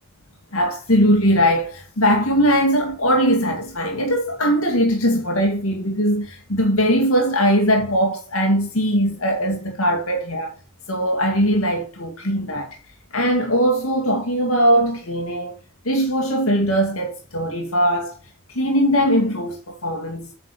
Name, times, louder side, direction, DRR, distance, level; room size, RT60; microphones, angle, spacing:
voice 1, 0.5-10.5 10.9-12.8 13.1-15.6 15.8-18.2 18.5-20.3, equal, 90° left, 2.3 m, -20 dB
9.2 x 5.4 x 6.9 m
head